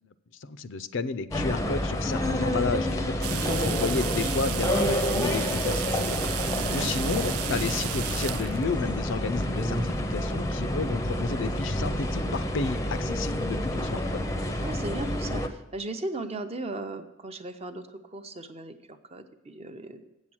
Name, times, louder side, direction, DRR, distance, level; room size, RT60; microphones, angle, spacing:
voice 1, 0.4-14.2, left 4 dB, 60° left, 13 dB, 0.5 m, -32 dB
sound 1, 1.3-15.5, left 1 dB, 15° left, 0.6 m, -28 dB
sound 2, 3.2-8.6, right 14 dB, 85° right, 0.3 m, -34 dB
voice 2, 6.5-6.9 14.6-20.0, right 2 dB, 30° right, 7 dB, 0.6 m, -37 dB
8.1 x 7.3 x 6.2 m, 1.0 s
head